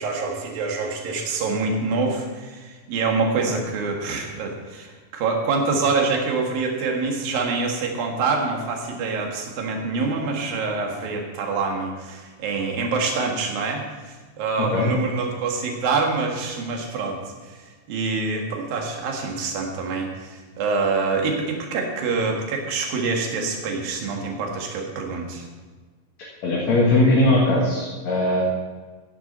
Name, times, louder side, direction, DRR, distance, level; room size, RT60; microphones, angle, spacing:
voice 1, 0.0-25.5, right 4 dB, 75° right, 1 dB, 3.5 m, -26 dB
voice 2, 14.6-14.9 26.4-28.4, left 2 dB, 50° left, -4 dB, 2.8 m, -19 dB
15.0 x 11.0 x 4.3 m, 1.3 s
omnidirectional pair, 4.3 m